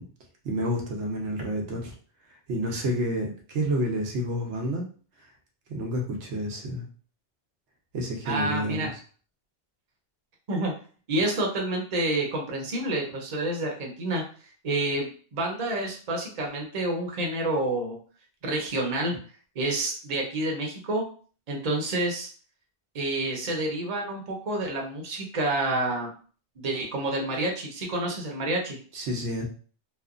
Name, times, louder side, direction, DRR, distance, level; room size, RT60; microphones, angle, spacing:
voice 1, 0.4-1.9 2.5-4.8 5.7-6.8 7.9-8.9 28.9-29.4, equal, 85° right, 1 dB, 1.0 m, -29 dB
voice 2, 8.3-8.9 10.5-10.7 11.1-14.2 14.6-18.0 18.4-19.1 19.6-21.0 21.5-22.3 22.9-26.1 26.6-28.8, right 2 dB, 40° right, 0 dB, 0.7 m, -28 dB
3.0 x 2.1 x 2.4 m, 0.41 s
omnidirectional pair, 1.2 m